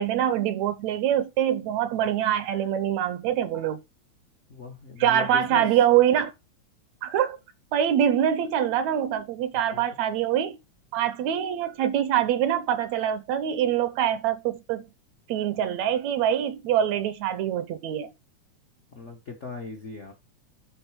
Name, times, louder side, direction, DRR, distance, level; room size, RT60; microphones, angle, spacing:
voice 1, 0.0-3.8 5.0-6.3 7.0-7.4 7.7-10.5 10.9-14.8 15.3-18.1, right 10 dB, 75° right, 1.8 m, -24 dB
voice 2, 4.5-5.7 9.5-9.8 18.9-20.1, left 4 dB, 75° left, 0.6 m, -38 dB
10.5 x 4.1 x 4.8 m
omnidirectional pair, 3.4 m